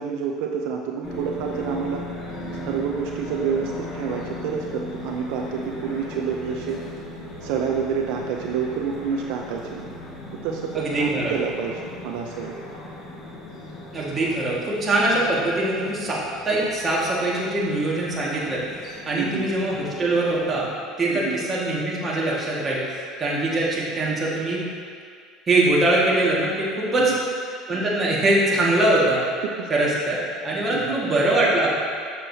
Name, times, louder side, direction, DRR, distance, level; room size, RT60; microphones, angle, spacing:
voice 1, 0.0-2.0 2.6-6.8 7.4-9.9 10.4-12.5 19.2-19.4 21.1-21.4 27.0-27.2 29.4-29.7 30.7-31.0, right 6 dB, 75° right, 2 dB, 0.5 m, -28 dB
sound 1, 1.0-20.7, left 1 dB, 45° left, 1.5 m, -38 dB
voice 2, 10.7-11.3 13.9-18.6 19.1-20.6 21.0-24.6 25.5-27.1 27.7-29.2 29.7-30.2 30.4-31.7, right 2 dB, 25° right, -5 dB, 1.7 m, -22 dB
7.1 x 6.9 x 2.8 m, 2.2 s
supercardioid pair, 115°, 0 cm